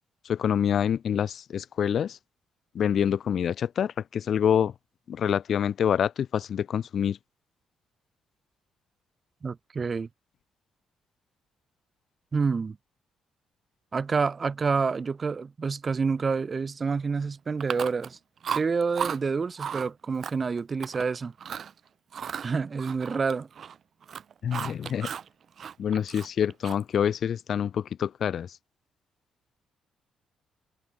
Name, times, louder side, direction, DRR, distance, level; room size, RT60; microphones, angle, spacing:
voice 1, 0.2-2.2 2.7-4.7 5.1-7.2 24.4-25.1 25.8-28.6, left 8 dB, 60° left, 0.5 m, -26 dB
voice 2, 9.4-10.1 12.3-12.8 13.9-18.2 18.5-21.3 22.4-23.5, right 5 dB, 35° right, 3.1 m, -28 dB
Chewing mastication, 17.6-18.2 18.4-19.2 19.6-19.9 20.2-21.1 21.4-21.7 22.1-23.8 24.0-25.3 25.6-27.0, right 7 dB, 55° right, 0.6 m, -35 dB
cardioid pair, 90°, 0 cm